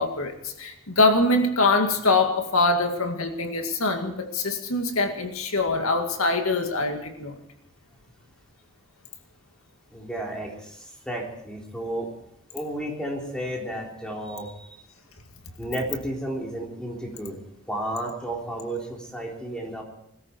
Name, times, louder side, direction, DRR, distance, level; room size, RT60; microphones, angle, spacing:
voice 1, 0.0-7.4, left 2 dB, 80° left, 4 dB, 2.2 m, -23 dB
voice 2, 9.9-12.1 12.5-14.7 15.6-17.4 17.7-19.8, right 1 dB, 5° left, -1 dB, 3.8 m, -32 dB
21.5 x 14.0 x 4.6 m, 0.81 s
head